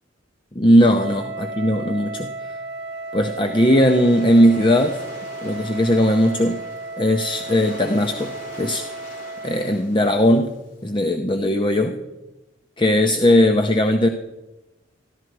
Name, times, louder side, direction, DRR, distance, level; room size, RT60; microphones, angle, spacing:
voice 1, 0.6-2.3 3.1-5.0 5.4-6.6 7.0-8.3 8.6-8.8 9.4-10.5 10.8-12.0 12.8-14.1, equal, 25° left, 5 dB, 0.6 m, -18 dB
Wind instrument woodwind instrument, 0.9-9.8, right 3 dB, 70° right, 0.8 m, -34 dB
Waves surf, 2.7-10.9, left 2 dB, 50° left, 4.3 m, -43 dB
14.0 x 12.0 x 4.7 m, 1.0 s
head